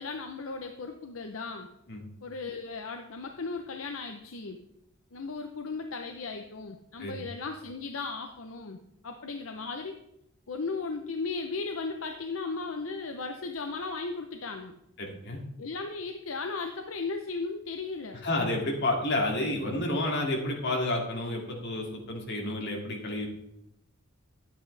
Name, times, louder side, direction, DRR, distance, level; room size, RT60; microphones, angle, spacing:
voice 1, 0.0-1.7 2.2-4.6 5.1-8.8 9.0-10.0 10.5-14.7 15.6-18.2, left 4 dB, 80° left, 5 dB, 0.8 m, -36 dB
voice 2, 15.0-15.4 18.2-23.3, left 1 dB, 60° left, 0 dB, 2.4 m, -30 dB
10.5 x 8.6 x 3.3 m, 0.82 s
head